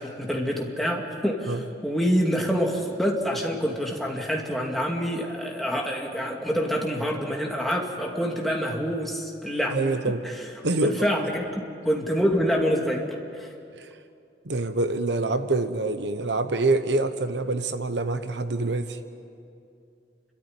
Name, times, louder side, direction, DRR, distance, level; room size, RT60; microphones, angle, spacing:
voice 1, 0.0-9.8 10.2-10.3 10.8-13.0 13.3-13.5, equal, ahead, -1 dB, 2.3 m, -26 dB
voice 2, 9.7-10.2 10.6-10.9 13.8-13.9 14.4-19.0, right 2 dB, 80° right, 10 dB, 1.0 m, -25 dB
29.5 x 13.0 x 9.9 m, 2.5 s
head